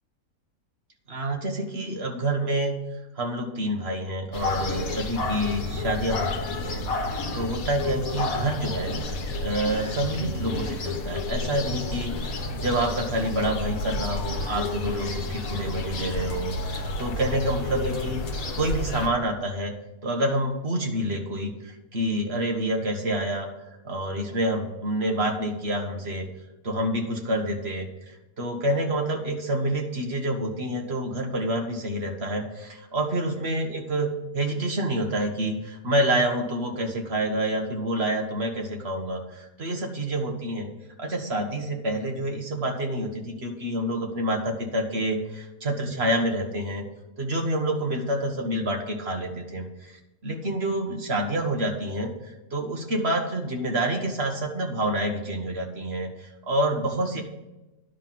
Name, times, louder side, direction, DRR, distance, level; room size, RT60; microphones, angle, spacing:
voice 1, 1.1-2.8 3.1-8.9 9.4-18.2 18.5-19.7 20.0-23.5 23.8-26.3 26.6-34.1 34.3-40.7 41.0-46.8 47.2-52.1 52.5-57.2, right 1 dB, 45° right, 2 dB, 1.6 m, -28 dB
sound 1, 4.3-19.1, left 2 dB, 65° left, 1.6 m, -31 dB
10.5 x 5.9 x 7.5 m, 1.0 s
omnidirectional pair, 1.6 m